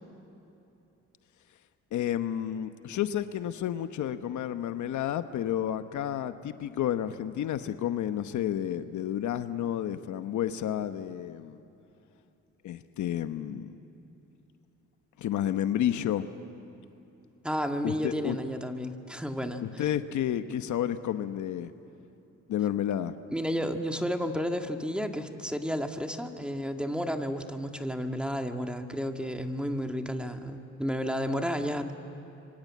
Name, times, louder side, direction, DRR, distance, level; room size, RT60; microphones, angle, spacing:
voice 1, 1.9-11.6 12.6-13.8 15.2-16.3 17.8-18.4 19.6-21.7 22.5-23.2, left 10 dB, 75° left, 10 dB, 1.0 m, -31 dB
voice 2, 17.4-19.8 23.3-31.9, equal, 5° right, 5 dB, 1.8 m, -32 dB
26.5 x 24.5 x 8.5 m, 2.8 s
cardioid pair, 90°, 30 cm